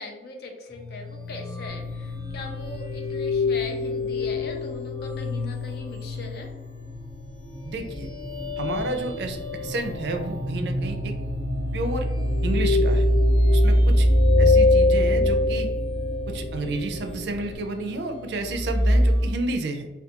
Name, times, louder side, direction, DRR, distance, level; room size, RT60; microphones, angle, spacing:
voice 1, 0.0-6.5, left 2 dB, 60° left, 3 dB, 0.5 m, -39 dB
sound 1, 0.7-19.3, left 1 dB, 40° left, 1.0 m, -24 dB
sound 2, 1.7-17.6, equal, 20° left, 0.8 m, -40 dB
voice 2, 7.6-8.1 8.6-11.1 11.7-12.1 12.4-13.1 13.5-14.1 14.4-15.7 16.3-19.9, right 2 dB, 65° right, 5 dB, 0.4 m, -31 dB
2.3 x 2.3 x 2.8 m, 1.1 s
head